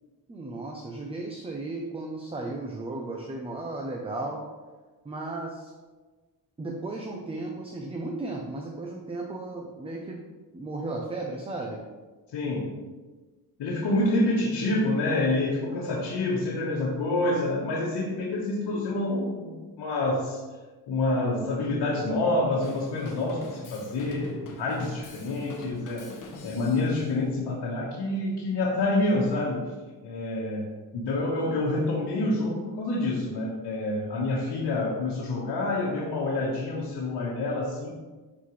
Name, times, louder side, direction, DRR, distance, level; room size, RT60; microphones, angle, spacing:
voice 1, 0.3-4.4 5.0-5.7 6.6-10.2 10.5-11.8, right 2 dB, 15° right, 0 dB, 0.5 m, -35 dB
voice 2, 12.3-12.7 13.6-20.4 20.9-26.0 26.4-29.6 30.0-30.7 30.9-37.9, left 2 dB, 85° left, -5 dB, 1.5 m, -27 dB
Drum kit / Drum, 22.6-27.0, left 3 dB, 50° left, 1.1 m, -44 dB
11.0 x 4.1 x 3.2 m, 1.3 s
cardioid pair, 155°, 41 cm